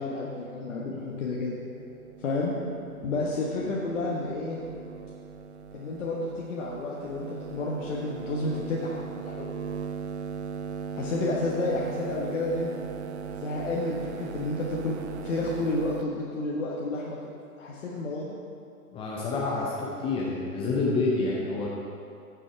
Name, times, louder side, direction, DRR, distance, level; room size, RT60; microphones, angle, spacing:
voice 1, 0.0-1.6 2.2-2.5 3.0-4.6 5.7-9.5 10.9-12.7 13.3-15.0 15.2-17.2 17.6-18.3, left 2 dB, 55° left, -4 dB, 1.2 m, -31 dB
sound 1, 1.0-16.0, right 6 dB, 50° right, 0.5 m, -39 dB
voice 2, 18.9-21.7, left 3 dB, 10° left, -4 dB, 0.6 m, -28 dB
11.0 x 6.2 x 4.7 m, 2.5 s
figure-of-eight pair, 110°, 45 cm